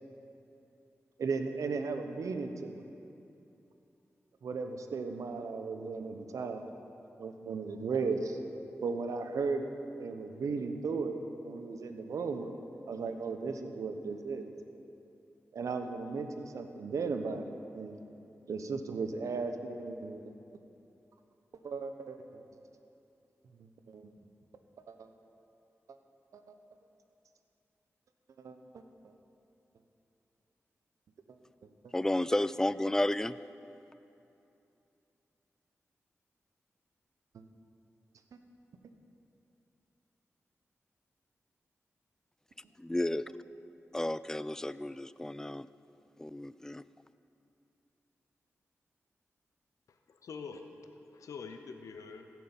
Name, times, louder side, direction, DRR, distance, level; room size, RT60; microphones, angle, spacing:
voice 1, 1.2-2.8 4.4-6.7 7.2-8.4 8.8-9.7 10.0-11.2 11.4-12.5 12.9-14.5 15.5-18.0 18.5-20.3 21.6-22.4 23.6-24.1 24.9-25.1 25.9-26.0 26.3-26.5 28.4-28.8 31.6-31.9 37.3-37.4, right 4 dB, 80° right, 7 dB, 0.8 m, -36 dB
voice 2, 31.9-33.4 42.8-43.2 43.9-45.7 46.2-46.8, left 1 dB, 10° left, 16 dB, 0.3 m, -32 dB
voice 3, 49.9-52.3, left 5 dB, 80° left, 6 dB, 0.7 m, -46 dB
15.0 x 6.1 x 7.1 m, 2.8 s
cardioid pair, 55°, 5 cm